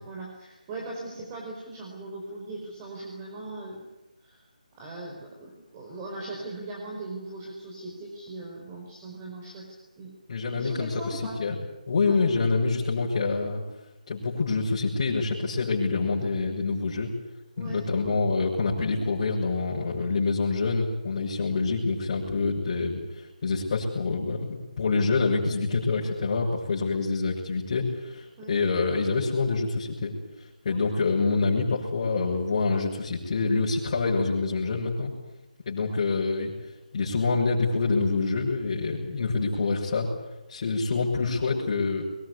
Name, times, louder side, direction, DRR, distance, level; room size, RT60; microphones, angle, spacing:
voice 1, 0.0-3.9 4.2-4.4 4.8-10.1 10.6-11.4 12.0-12.2 17.6-17.8 28.4-28.5 30.7-30.8, right 2 dB, 20° right, -1 dB, 4.9 m, -39 dB
voice 2, 10.3-11.5 11.9-13.6 14.1-17.1 17.6-30.1 30.6-35.1 35.7-36.5 36.9-40.1 40.5-42.0, left 4 dB, 40° left, -6 dB, 6.9 m, -26 dB
23.0 x 21.0 x 9.8 m, 0.98 s
figure-of-eight pair, 160°, 4 cm